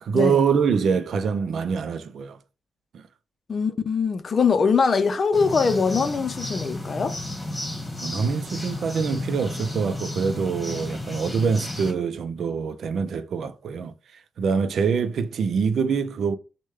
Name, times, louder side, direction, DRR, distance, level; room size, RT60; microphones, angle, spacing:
voice 1, 0.0-2.4 2.9-3.1 8.0-13.9 14.4-16.4, right 6 dB, 75° right, 0.4 m, -24 dB
voice 2, 3.5-7.2, left 5 dB, 50° left, 0.5 m, -22 dB
sound 1, 5.3-11.9, left 1 dB, 25° left, 1.3 m, -33 dB
6.4 x 2.2 x 3.5 m
cardioid pair, 95°, 0 cm